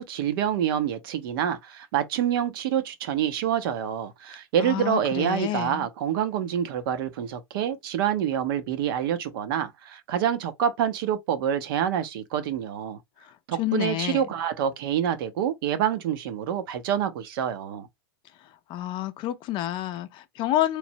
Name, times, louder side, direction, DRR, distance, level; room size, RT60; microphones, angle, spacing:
voice 1, 0.0-13.0 13.5-17.9, right 9 dB, 65° right, 0.6 m, -27 dB
voice 2, 4.6-5.9 13.2-14.3 18.7-20.8, left 14 dB, 40° left, 0.4 m, -29 dB
3.1 x 2.0 x 2.6 m
hypercardioid pair, 115°, 12 cm